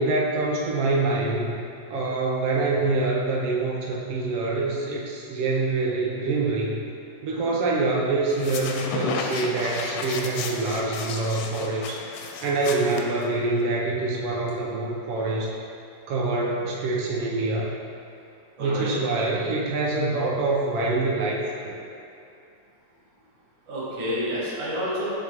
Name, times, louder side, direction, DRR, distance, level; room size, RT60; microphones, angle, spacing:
voice 1, 0.0-1.6 1.9-6.8 7.2-12.0 12.4-15.5 16.1-17.7 18.6-21.8, right 3 dB, 85° right, -3 dB, 1.3 m, -25 dB
sound 1, 8.3-13.7, left 4 dB, 85° left, 2.0 m, -33 dB
voice 2, 18.6-19.0 23.7-25.1, equal, 50° right, -8 dB, 2.0 m, -29 dB
7.0 x 5.1 x 2.9 m, 2.5 s
omnidirectional pair, 3.5 m